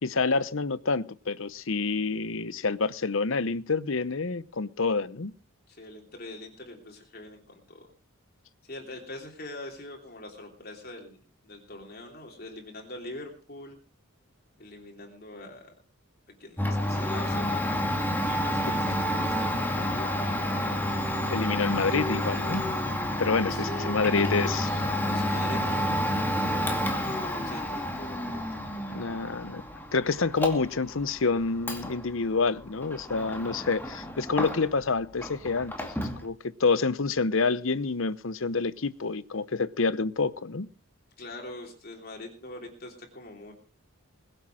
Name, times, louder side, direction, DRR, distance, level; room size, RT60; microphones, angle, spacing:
voice 1, 0.0-5.3 21.3-22.6 23.2-24.7 28.9-29.6 29.9-40.7, left 4 dB, 65° left, 0.8 m, -28 dB
voice 2, 5.7-7.4 7.7-7.9 8.6-13.8 14.6-15.7 16.4-17.8 18.2-20.5 23.5-24.5 25.0-25.9 26.3-28.6 28.9-29.0 41.2-43.5, left 1 dB, 45° left, 3.2 m, -43 dB
Domestic sounds home sounds, 16.6-34.9 35.2-36.2, equal, 10° left, 2.3 m, -30 dB
21.5 x 8.0 x 6.4 m
head